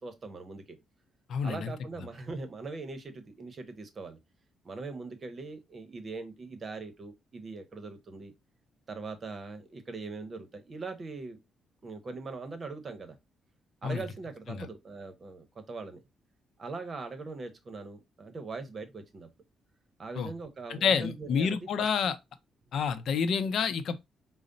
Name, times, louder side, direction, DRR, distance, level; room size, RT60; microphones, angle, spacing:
voice 1, 0.0-0.8 1.4-4.2 4.6-8.3 8.9-11.4 11.8-13.2 13.8-16.0 16.6-19.3 20.0-21.9, right 3 dB, 40° right, 0.9 m, -41 dB
voice 2, 1.3-1.7 13.8-14.0 14.5-14.7 20.2-20.3 20.7-22.2 22.7-24.0, left 6 dB, 65° left, 0.5 m, -28 dB
4.9 x 2.1 x 3.9 m
cardioid pair, 90°, 0 cm